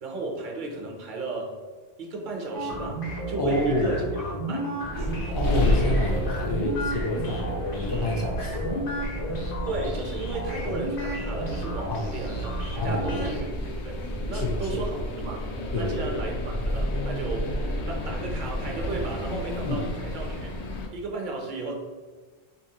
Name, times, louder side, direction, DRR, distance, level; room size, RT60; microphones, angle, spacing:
voice 1, 0.0-1.6 2.0-3.0 3.3-4.2 4.5-5.1 9.7-12.6 12.8-17.5 17.9-21.7, right 3 dB, 55° right, 0 dB, 0.8 m, -34 dB
sound 1, 2.5-13.4, equal, 55° left, 1.0 m, -32 dB
voice 2, 3.4-4.0 5.3-8.9 11.9-12.1 12.8-13.3 14.3-14.8 15.7-16.2 19.6-19.8, left 1 dB, 30° left, -1 dB, 0.6 m, -29 dB
sound 2, 4.9-20.9, left 1 dB, 85° left, 0.9 m, -31 dB
4.0 x 2.9 x 2.8 m, 1.4 s
omnidirectional pair, 1.1 m